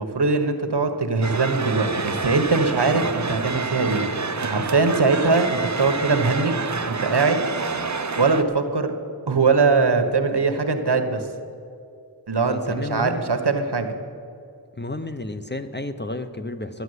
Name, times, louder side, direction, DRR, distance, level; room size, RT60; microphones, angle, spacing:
voice 1, 0.0-6.5 6.9-7.4 8.1-8.9 9.3-11.3 12.3-13.9, right 4 dB, 60° right, 7 dB, 1.3 m, -21 dB
sound 1, 1.2-8.4, right 4 dB, 40° right, 0.8 m, -28 dB
voice 2, 12.4-13.2 14.8-16.8, left 2 dB, 25° left, 9 dB, 0.7 m, -31 dB
12.5 x 9.4 x 8.0 m, 2.5 s
wide cardioid pair, 45°, 45 cm